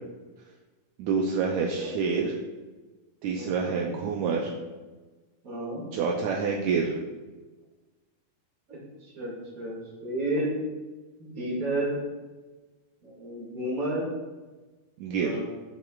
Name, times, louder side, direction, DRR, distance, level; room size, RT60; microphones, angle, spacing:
voice 1, 1.0-2.4 3.2-4.5 5.9-7.0 15.0-15.4, right 5 dB, 75° right, 0 dB, 1.9 m, -27 dB
voice 2, 3.3-4.0 5.4-5.8 8.7-8.8 9.1-10.6 11.2-12.0 13.0-14.1 15.0-15.4, right 1 dB, 30° right, -4 dB, 2.4 m, -32 dB
12.0 x 5.2 x 2.4 m, 1.3 s
omnidirectional pair, 3.6 m